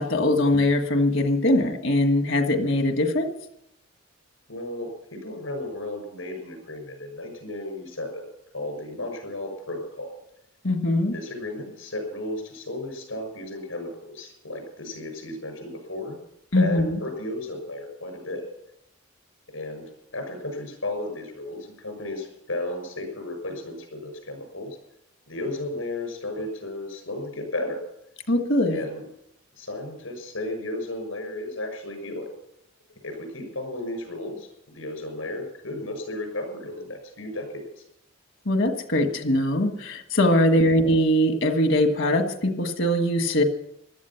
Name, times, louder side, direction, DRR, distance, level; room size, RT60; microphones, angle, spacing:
voice 1, 0.0-3.3 10.6-11.1 16.5-17.0 28.3-28.8 38.4-43.4, left 1 dB, 65° left, 6 dB, 1.6 m, -21 dB
voice 2, 4.5-8.2 8.5-10.2 11.0-16.2 16.5-18.4 19.5-19.8 20.1-24.8 25.3-27.8 28.7-29.0 29.6-32.3 33.0-34.5 34.7-37.8 40.4-40.6, left 1 dB, 85° left, 5 dB, 6.4 m, -34 dB
16.0 x 12.5 x 5.9 m, 0.79 s
head